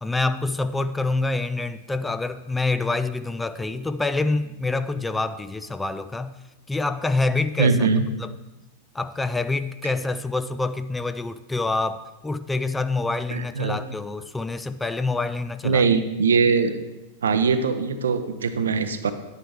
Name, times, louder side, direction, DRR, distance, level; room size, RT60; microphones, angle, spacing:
voice 1, 0.0-6.4 6.7-7.8 8.2-8.3 8.9-15.9, left 3 dB, 10° left, 11 dB, 0.3 m, -26 dB
voice 2, 7.6-8.1 13.3-13.8 15.6-16.7 17.2-19.1, right 5 dB, 65° right, 10 dB, 0.6 m, -21 dB
9.8 x 9.0 x 3.5 m, 1.1 s
figure-of-eight pair, 90°, 0 cm